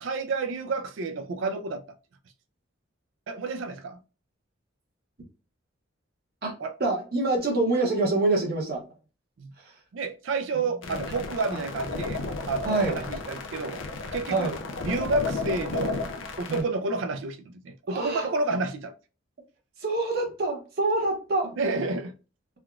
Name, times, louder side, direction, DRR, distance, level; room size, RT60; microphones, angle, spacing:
voice 1, 0.0-1.8 3.3-4.0 6.6-6.7 9.4-9.5 9.9-12.2 12.5-13.8 14.1-14.5 14.9-16.1 16.4-18.9 21.6-22.1, right 3 dB, 75° right, 0.4 m, -30 dB
voice 2, 6.8-8.8 9.6-9.7 10.9-11.0 11.5-11.6 12.6-13.0 14.3-14.6 16.5-16.7 17.9-18.3 19.8-21.5, right 2 dB, 55° right, 0.9 m, -26 dB
sound 1, 10.8-16.6, left 3 dB, 75° left, 0.6 m, -33 dB
3.5 x 2.3 x 2.4 m
head